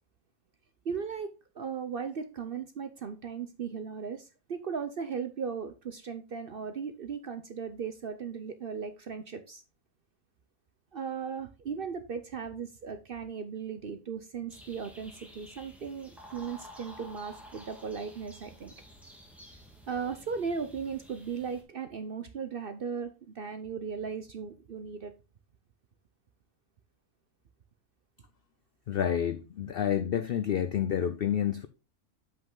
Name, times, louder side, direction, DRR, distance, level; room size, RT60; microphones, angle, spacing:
voice 1, 0.8-9.6 10.9-18.7 19.9-25.1, right 6 dB, 55° right, 0.7 m, -37 dB
sound 1, 14.5-21.6, equal, ahead, 1.5 m, -51 dB
voice 2, 28.9-31.7, left 9 dB, 75° left, 0.5 m, -29 dB
7.8 x 5.6 x 3.7 m
omnidirectional pair, 1.6 m